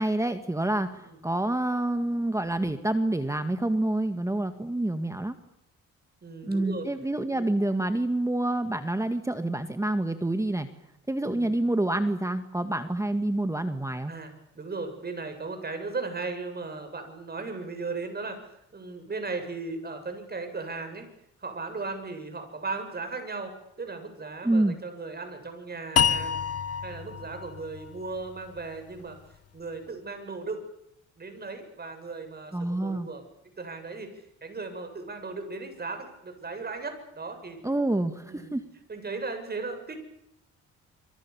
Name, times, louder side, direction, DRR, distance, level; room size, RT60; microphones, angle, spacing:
voice 1, 0.0-5.4 6.4-10.7 11.1-14.1 24.4-24.8 32.5-33.1 37.6-38.6, right 1 dB, 10° right, 8 dB, 2.0 m, -27 dB
voice 2, 6.2-6.9 7.3-7.5 11.2-11.5 14.1-21.1 21.4-26.4 26.8-29.2 29.5-30.6 31.2-33.2 33.6-34.1 34.4-37.6 38.2-38.6 38.9-40.0, right 3 dB, 30° right, 7 dB, 8.0 m, -37 dB
sound 1, 26.0-29.1, left 8 dB, 55° left, 1.1 m, -29 dB
26.5 x 26.5 x 7.2 m, 0.80 s
cardioid pair, 90°, 30 cm